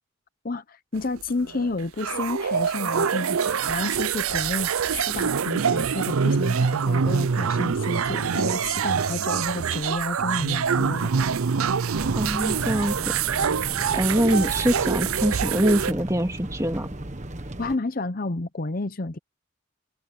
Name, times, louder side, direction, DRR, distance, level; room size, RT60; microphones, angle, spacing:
voice 1, 0.4-11.1 17.6-19.2, left 2 dB, 45° left, 0.7 m, -31 dB
sound 1, 1.0-15.9, right 6 dB, 90° right, 0.5 m, -25 dB
sound 2, 12.0-17.8, right 1 dB, 35° right, 1.4 m, -35 dB
voice 2, 12.1-12.9 13.9-16.9, equal, 15° right, 2.5 m, -24 dB
head